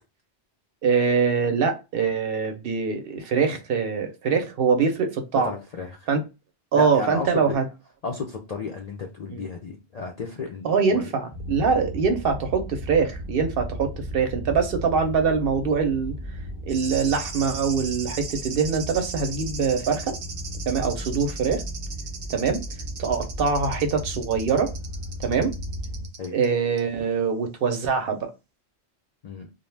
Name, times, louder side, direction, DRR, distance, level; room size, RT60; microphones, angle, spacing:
voice 1, 0.8-5.5 6.1-6.2 6.7-7.6 9.3-9.4 10.6-16.1 16.7-20.2 20.7-21.6 22.3-22.6 23.0-24.7 25.2-25.5 26.3-28.3, right 5 dB, 65° right, 0.7 m, -23 dB
voice 2, 5.4-6.1 6.7-7.6 8.0-11.1 26.2-26.4 29.2-29.5, left 4 dB, 60° left, 0.4 m, -33 dB
sound 1, 11.3-26.1, equal, 10° right, 0.5 m, -35 dB
sound 2, 16.7-26.5 26.8-26.9, right 5 dB, 90° right, 0.9 m, -38 dB
2.5 x 2.1 x 3.2 m
omnidirectional pair, 1.2 m